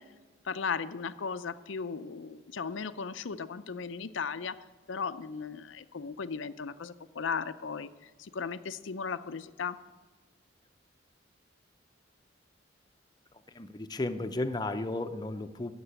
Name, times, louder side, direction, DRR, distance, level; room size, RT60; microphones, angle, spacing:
voice 1, 0.4-9.8, left 5 dB, 80° left, 12 dB, 0.6 m, -36 dB
voice 2, 13.5-15.7, left 2 dB, 20° left, 8 dB, 0.6 m, -34 dB
15.0 x 6.7 x 9.8 m, 1.3 s
head